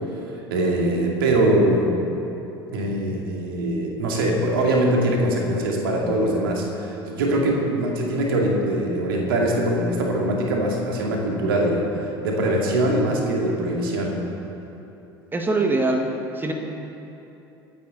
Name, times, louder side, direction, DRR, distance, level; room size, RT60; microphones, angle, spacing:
voice 1, 0.5-1.9 2.7-14.2, right 1 dB, 65° right, -1 dB, 2.4 m, -22 dB
voice 2, 15.3-16.1 16.4-16.5, right 2 dB, 15° right, 3 dB, 1.7 m, -22 dB
24.5 x 9.7 x 4.1 m, 3.0 s
figure-of-eight pair, 70°, 13 cm